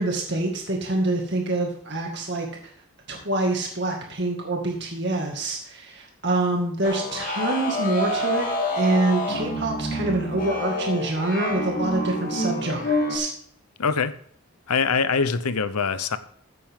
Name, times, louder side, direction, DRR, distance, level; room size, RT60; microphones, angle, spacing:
voice 1, 0.0-2.5 3.1-13.3, right 2 dB, 50° right, 2.1 m, -26 dB
sound 1, 6.8-13.2, left 1 dB, 35° left, 2.6 m, -27 dB
voice 2, 13.8-14.1 14.7-16.2, left 5 dB, 90° left, 0.8 m, -23 dB
15.0 x 9.5 x 3.7 m
head